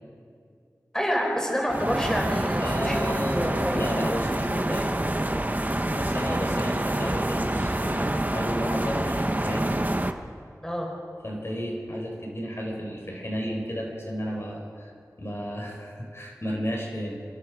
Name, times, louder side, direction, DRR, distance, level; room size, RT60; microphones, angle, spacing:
voice 1, 0.9-4.0 10.6-10.9, equal, 10° left, 0 dB, 4.7 m, -28 dB
sound 1, 1.7-10.1, right 1 dB, 25° right, 1.2 m, -27 dB
voice 2, 2.6-5.1 5.9-9.8 11.2-14.9 15.2-17.2, equal, 45° left, -1 dB, 4.9 m, -32 dB
27.0 x 21.0 x 5.1 m, 2.2 s
wide cardioid pair, 40°, 6 cm